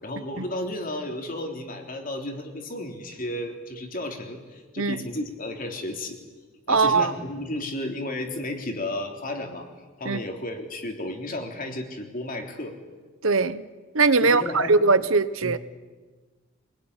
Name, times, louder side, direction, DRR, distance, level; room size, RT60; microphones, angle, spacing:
voice 1, 0.0-6.2 6.7-9.7 10.0-12.8 14.2-14.7 15.4-15.5, left 1 dB, 40° left, 3.5 m, -33 dB
voice 2, 6.7-7.1 10.0-10.2 13.2-13.6 13.9-15.6, right 4 dB, 70° right, 1.1 m, -21 dB
26.5 x 20.0 x 9.9 m
head